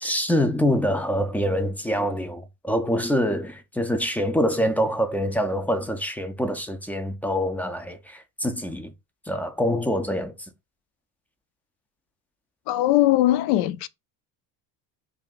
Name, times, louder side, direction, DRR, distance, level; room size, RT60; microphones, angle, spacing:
voice 1, 0.0-8.9 9.3-10.5, equal, 5° left, 0.3 m, -25 dB
voice 2, 12.7-13.9, left 15 dB, 75° left, 0.5 m, -20 dB
2.6 x 2.4 x 3.8 m
hypercardioid pair, 75°, 48 cm